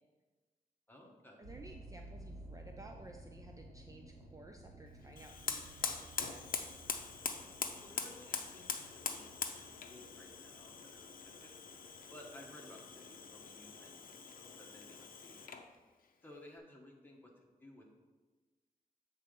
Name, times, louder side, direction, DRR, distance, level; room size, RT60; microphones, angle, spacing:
voice 1, 0.9-1.4 7.8-11.5 12.1-15.6 16.2-17.9, left 1 dB, 15° left, -1 dB, 1.3 m, -57 dB
voice 2, 1.4-6.4, right 2 dB, 20° right, 3 dB, 0.4 m, -55 dB
sound 1, 1.4-13.7 14.3-14.6 15.2-15.3 15.7-15.8, right 1 dB, 85° right, 2.4 m, -56 dB
Fire, 5.1-15.7, left 6 dB, 70° left, 0.6 m, -43 dB
8.0 x 3.9 x 5.2 m, 1.3 s
wide cardioid pair, 125°, 15 cm